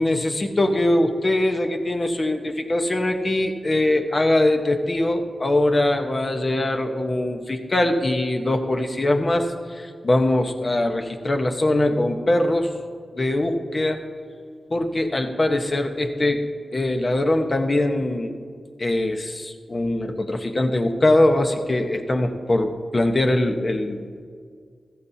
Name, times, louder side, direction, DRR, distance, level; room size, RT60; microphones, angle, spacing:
voice 1, 0.0-12.7 13.1-14.0 14.7-16.4 16.7-18.3 18.8-24.0, left 1 dB, 40° left, 5 dB, 1.1 m, -22 dB
15.0 x 14.5 x 2.8 m, 2.1 s
wide cardioid pair, 70°, 0 cm